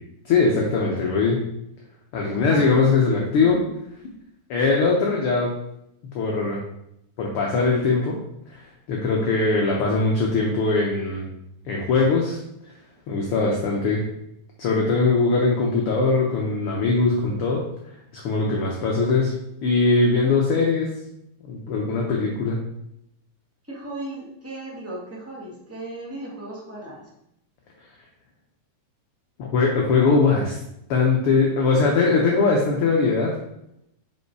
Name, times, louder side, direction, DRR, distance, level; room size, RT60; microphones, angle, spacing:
voice 1, 0.2-1.4 2.1-3.7 4.5-5.5 6.1-6.6 7.2-8.2 8.5-8.6 8.9-11.3 11.6-12.4 13.1-14.0 14.6-17.6 18.1-19.3 19.6-20.9 21.5-22.6 29.4-30.6 30.9-33.3, left 4 dB, 70° left, -1 dB, 1.4 m, -21 dB
voice 2, 2.2-2.9 23.7-27.0, right 1 dB, 10° right, -5 dB, 0.7 m, -36 dB
5.5 x 5.4 x 4.7 m, 0.80 s
omnidirectional pair, 3.7 m